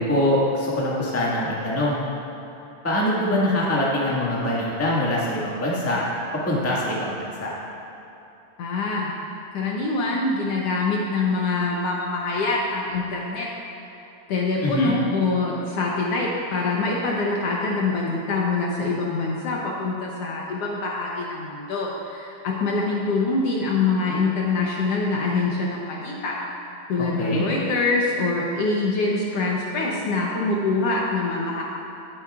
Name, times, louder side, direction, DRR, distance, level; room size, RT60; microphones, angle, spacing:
voice 1, 0.0-2.0 2.8-6.0 6.3-7.5 14.6-14.9 27.0-27.4, left 1 dB, 15° left, -6 dB, 0.5 m, -24 dB
voice 2, 8.6-9.1 9.5-13.5 14.3-26.4 26.9-31.6, left 3 dB, 70° left, -3 dB, 1.6 m, -24 dB
17.5 x 8.6 x 2.4 m, 3.0 s
omnidirectional pair, 3.6 m